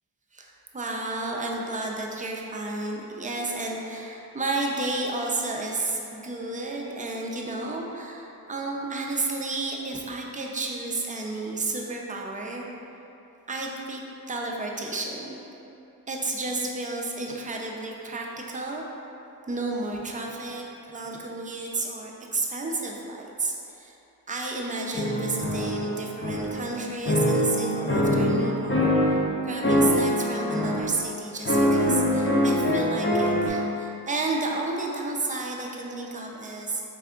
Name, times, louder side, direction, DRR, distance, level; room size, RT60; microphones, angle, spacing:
voice 1, 0.3-12.7 13.5-14.0 14.3-15.4 16.1-18.8 19.5-24.0 24.3-36.8, right 2 dB, 20° right, -1 dB, 0.4 m, -32 dB
sound 1, 24.9-26.7 27.1-29.3 29.6-30.9 31.5-33.5, equal, 30° left, 0.7 m, -23 dB
3.4 x 3.4 x 3.7 m, 2.9 s
wide cardioid pair, 90°, 37 cm